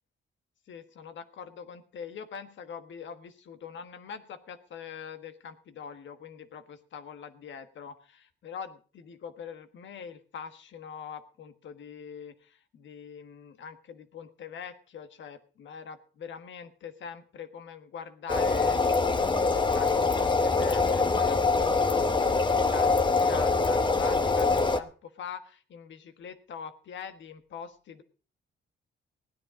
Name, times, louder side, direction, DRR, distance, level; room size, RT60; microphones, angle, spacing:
voice 1, 0.7-28.0, left 7 dB, 70° left, 10 dB, 1.5 m, -43 dB
sound 1, 18.3-24.8, left 4 dB, 25° left, 1.0 m, -24 dB
16.5 x 10.0 x 5.0 m, 0.37 s
cardioid pair, 90°, 20 cm